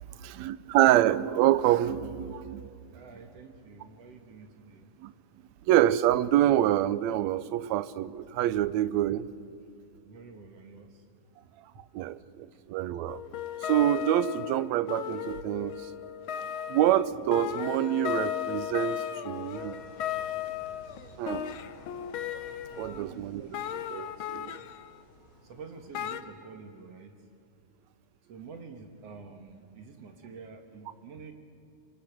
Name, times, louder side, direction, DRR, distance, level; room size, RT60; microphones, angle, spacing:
voice 1, 0.0-2.7 5.0-5.1 5.7-9.3 11.9-13.2 13.6-15.9 16.7-19.8 21.2-21.6 22.8-23.5 23.9-24.6, right 13 dB, 75° right, 16 dB, 1.8 m, -26 dB
voice 2, 2.9-4.9 10.0-11.1 11.3-12.6 22.9-23.7 24.3-24.6 25.4-27.3 28.3-31.3, right 5 dB, 60° right, 6 dB, 2.3 m, -48 dB
sound 1, 13.1-23.0 23.5-25.0 25.9-26.2, left 10 dB, 80° left, 1.1 m, -35 dB
sound 2, 19.3-26.8, left 1 dB, 50° left, 5.4 m, -55 dB
26.5 x 24.0 x 6.0 m, 2.5 s
omnidirectional pair, 3.5 m